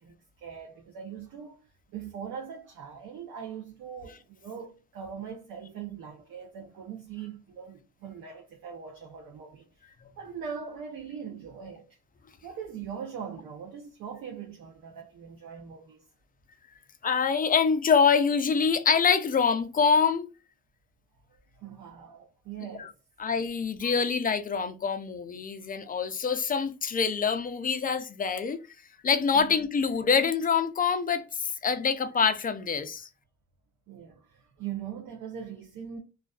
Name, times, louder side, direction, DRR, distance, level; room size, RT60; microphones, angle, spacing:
voice 1, 0.0-11.9 12.4-16.0 21.6-22.9 23.8-23.9 29.3-29.5 33.9-36.0, right 7 dB, 80° right, 0.6 m, -41 dB
voice 2, 17.0-20.3 22.8-22.9 23.2-28.6 29.0-33.1, left 6 dB, 30° left, 0.4 m, -25 dB
2.4 x 2.3 x 2.3 m
cardioid pair, 90°, 30 cm